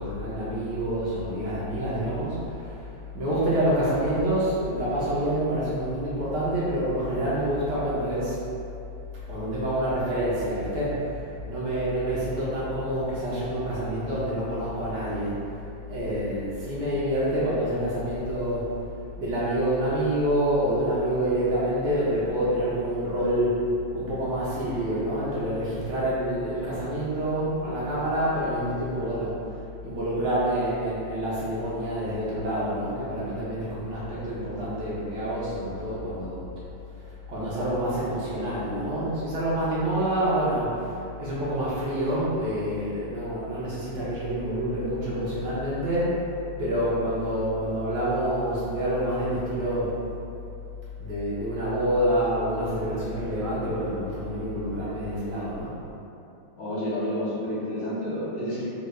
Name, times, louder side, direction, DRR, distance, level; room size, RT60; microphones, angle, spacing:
voice 1, 0.0-8.4 9.3-15.4 15.9-18.7 19.2-29.3 29.8-36.4 37.3-46.2 46.6-49.9 51.0-55.7, right 1 dB, 70° right, -9 dB, 1.2 m, -27 dB
voice 2, 56.6-58.7, equal, 60° left, -9 dB, 1.2 m, -30 dB
3.5 x 3.1 x 2.2 m, 2.8 s
omnidirectional pair, 2.1 m